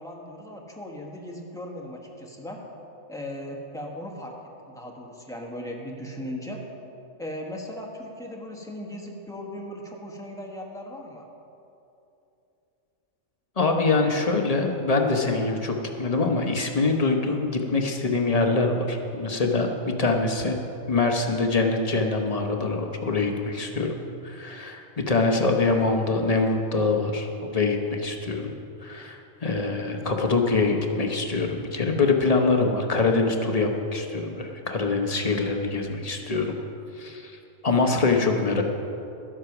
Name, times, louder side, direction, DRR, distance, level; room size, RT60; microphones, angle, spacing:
voice 1, 0.0-2.6 3.1-4.4 4.7-6.6 7.2-11.3, left 1 dB, 5° left, -1 dB, 1.2 m, -37 dB
voice 2, 13.6-20.6 20.9-23.9 24.2-28.5 28.8-36.6 37.0-37.3 37.6-38.6, left 3 dB, 30° left, 3 dB, 0.9 m, -24 dB
12.5 x 8.1 x 6.0 m, 2.8 s
omnidirectional pair, 1.4 m